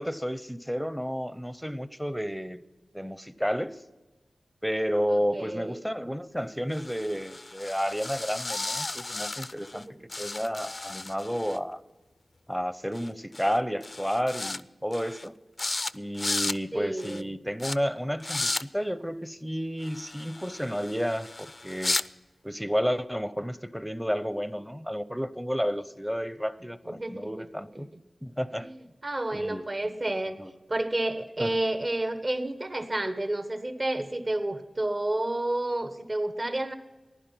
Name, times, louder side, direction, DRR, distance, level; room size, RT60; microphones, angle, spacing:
voice 1, 0.0-2.6 2.9-3.8 4.6-9.8 10.2-11.8 12.5-15.4 15.9-22.0 22.4-27.9 28.2-28.7 29.3-29.7 30.4-30.5 31.4-31.6, equal, ahead, 15 dB, 0.7 m, -31 dB
voice 2, 5.1-5.8 9.7-10.0 16.7-17.3 26.9-27.5 27.7-27.8 28.6-30.4 30.7-36.7, right 1 dB, 40° right, 9 dB, 1.2 m, -30 dB
sound 1, 6.7-9.8 10.1-11.6 12.9-13.1 13.3-13.6 13.8-14.6 14.9-15.3 15.6-15.9 16.2-16.6 17.0-17.2 17.6-17.8 18.2-18.6 19.8-22.1, left 2 dB, 40° left, 0.4 m, -34 dB
15.0 x 11.0 x 5.6 m, 1.2 s
wide cardioid pair, 55°, 0 cm